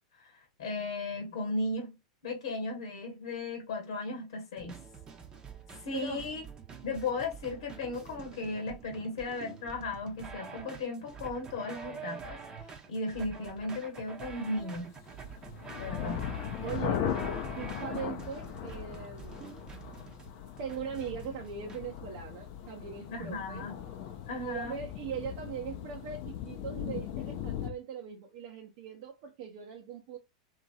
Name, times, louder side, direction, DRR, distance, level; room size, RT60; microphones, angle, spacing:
voice 1, 0.2-2.0 2.2-4.8 5.7-6.4 6.8-14.9 15.8-16.2 23.1-23.7 24.3-24.8, left 2 dB, 75° left, 1.1 m, -36 dB
sound 1, 4.6-21.8, right 6 dB, 25° right, 0.8 m, -47 dB
voice 2, 5.9-6.3 16.6-17.1 17.4-19.5 20.6-23.7 24.4-30.2, right 7 dB, 60° right, 0.7 m, -40 dB
sound 2, 14.9-27.7, left 9 dB, 55° left, 0.6 m, -38 dB
2.9 x 2.8 x 2.3 m
hypercardioid pair, 105°, 3 cm